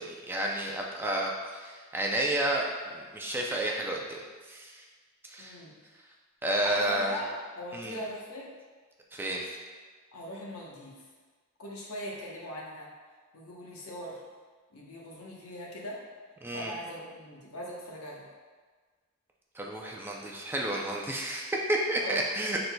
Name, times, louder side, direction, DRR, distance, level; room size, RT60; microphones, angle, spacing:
voice 1, 0.0-4.2 4.5-4.8 5.2-5.6 6.4-7.2 7.7-8.0 9.1-9.5 16.4-16.7 19.5-22.7, right 1 dB, 10° right, -1 dB, 0.4 m, -31 dB
voice 2, 5.4-5.7 6.6-7.3 7.6-8.5 10.1-11.0 11.6-12.9 13.3-14.2 14.7-16.0 16.5-18.3 22.0-22.2, equal, 75° left, -3 dB, 1.0 m, -40 dB
6.2 x 3.9 x 2.2 m, 1.5 s
head